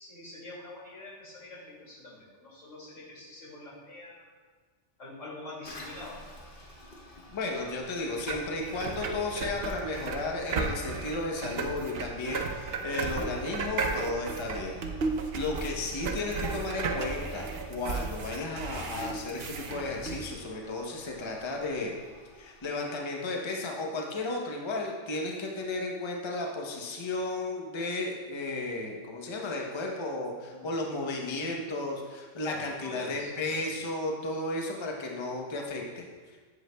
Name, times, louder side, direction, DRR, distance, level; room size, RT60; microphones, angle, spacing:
voice 1, 0.0-4.3 5.0-6.6 30.5-30.7 32.4-33.6, left 2 dB, 90° left, -6 dB, 2.6 m, -45 dB
Toilet flush, 5.6-22.7, left 1 dB, 45° left, 1.2 m, -52 dB
voice 2, 7.3-14.8 15.3-21.9 22.4-36.4, left 2 dB, 25° left, 0 dB, 0.7 m, -34 dB
sound 1, 8.1-20.2, right 4 dB, 60° right, 0.8 m, -35 dB
7.9 x 7.8 x 2.2 m, 1.5 s
omnidirectional pair, 1.3 m